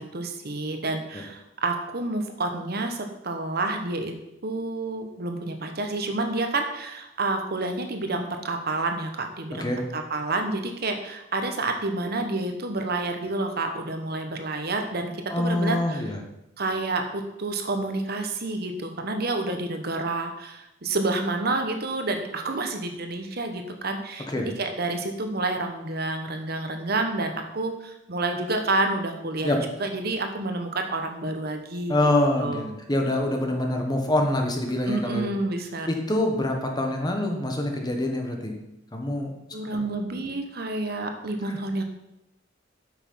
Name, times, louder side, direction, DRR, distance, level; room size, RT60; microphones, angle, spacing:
voice 1, 0.0-4.1 4.4-16.0 16.6-24.3 24.6-32.1 32.4-32.7 34.9-35.9 39.5-41.8, right 2 dB, 55° right, 5 dB, 1.1 m, -29 dB
voice 2, 9.5-9.8 15.3-16.2 24.3-24.5 29.4-29.6 31.9-35.3 35.9-38.5 38.9-39.3 39.7-39.8 41.5-41.6, left 1 dB, 20° left, 2 dB, 1.3 m, -25 dB
8.8 x 6.3 x 5.6 m, 0.89 s
head